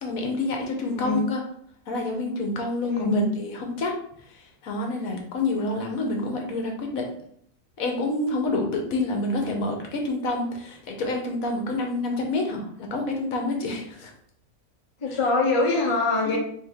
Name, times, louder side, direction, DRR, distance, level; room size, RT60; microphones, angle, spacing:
voice 1, 0.0-1.4 1.9-4.0 4.3-7.1 7.8-14.1 16.2-16.4, left 2 dB, 75° left, 2 dB, 1.2 m, -28 dB
voice 2, 0.8-1.3 2.9-3.2 15.0-16.4, left 3 dB, 30° left, -1 dB, 0.6 m, -24 dB
3.6 x 2.7 x 3.5 m, 0.65 s
omnidirectional pair, 1.5 m